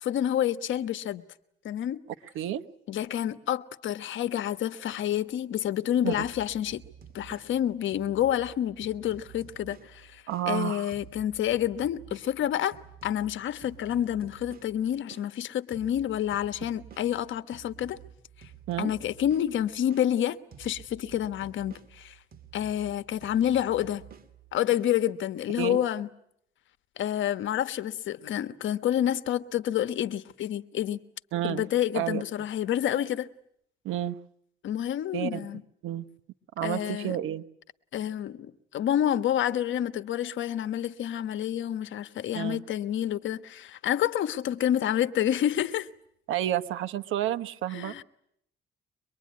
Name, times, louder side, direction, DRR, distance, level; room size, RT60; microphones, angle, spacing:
voice 1, 0.0-1.2 1.6-2.0 2.9-6.8 7.1-12.7 13.0-18.0 18.8-22.1 22.5-24.0 24.5-26.1 27.0-31.0 31.4-33.3 34.6-35.6 36.6-37.2 37.9-45.9 47.7-48.0, left 11 dB, 75° left, 1.2 m, -28 dB
sound 1, 6.1-10.5 10.9-15.3 15.7-20.1 20.5-24.9, right 8 dB, 45° right, 2.4 m, -51 dB
voice 2, 10.3-10.9 18.7-18.9 25.6-25.8 31.3-31.6 31.9-32.2 33.8-34.2 35.1-35.4 35.8-36.0 36.6-37.4 42.3-42.6 46.3-47.9, right 12 dB, 85° right, 1.1 m, -30 dB
24.0 x 22.0 x 9.4 m
cardioid pair, 90°, 20 cm